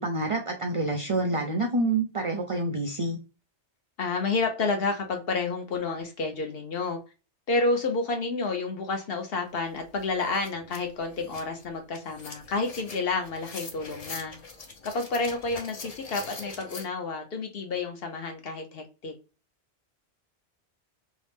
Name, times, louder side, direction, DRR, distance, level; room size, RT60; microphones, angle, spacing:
voice 1, 0.0-3.2, right 2 dB, 60° right, 0.3 m, -27 dB
voice 2, 4.0-7.0 7.5-14.3 14.8-19.1, left 3 dB, 60° left, 0.9 m, -30 dB
sound 1, 9.5-9.6 10.0-16.8, left 4 dB, 45° left, 0.5 m, -43 dB
2.8 x 2.0 x 3.3 m
omnidirectional pair, 1.2 m